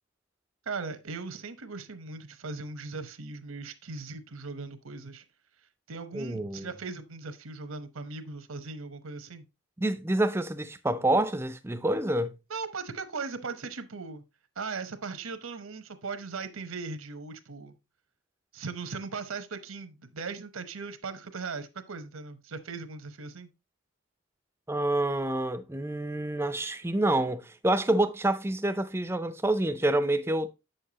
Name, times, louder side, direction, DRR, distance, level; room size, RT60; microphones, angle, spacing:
voice 1, 0.7-5.2 5.9-9.4 12.5-14.2 14.6-17.8 18.5-23.5, right 4 dB, 75° right, 0.9 m, -38 dB
voice 2, 6.1-6.7 9.8-12.3 24.7-30.5, right 1 dB, 10° right, 0.4 m, -27 dB
7.9 x 6.6 x 2.8 m
head